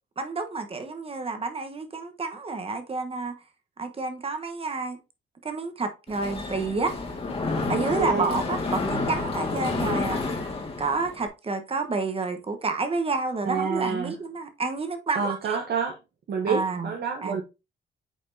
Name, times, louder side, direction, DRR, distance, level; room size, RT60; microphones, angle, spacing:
voice 1, 0.2-3.3 3.8-5.0 5.4-6.9 7.3-7.4 7.7-10.2 10.8-15.4 16.5-16.9 17.2-17.4, right 3 dB, 30° right, 1.1 m, -29 dB
Mechanisms, 6.1-11.3, left 3 dB, 30° left, 1.8 m, -29 dB
voice 2, 7.8-8.4 13.5-14.2 15.1-16.0 16.3-17.4, right 5 dB, 55° right, 1.0 m, -28 dB
8.1 x 4.3 x 2.7 m
cardioid pair, 90°, 20 cm